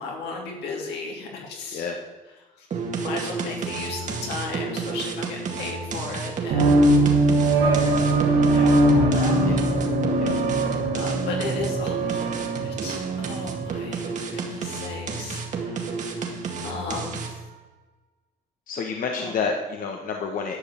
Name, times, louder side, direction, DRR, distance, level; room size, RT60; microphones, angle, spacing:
voice 1, 0.0-1.9 2.6-2.7 2.9-7.1 7.7-8.0 8.5-9.4 10.9-12.2 12.6-17.4 19.2-19.4, left 4 dB, 80° left, 0 dB, 3.3 m, -35 dB
sound 1, 2.7-17.5, right 4 dB, 45° right, 2.1 m, -31 dB
sound 2, 6.5-13.8, right 2 dB, 65° right, 2.8 m, -21 dB
voice 2, 18.7-20.6, left 5 dB, 55° left, 2 dB, 1.4 m, -29 dB
11.5 x 5.7 x 8.6 m, 1.2 s
cardioid pair, 110°, 17 cm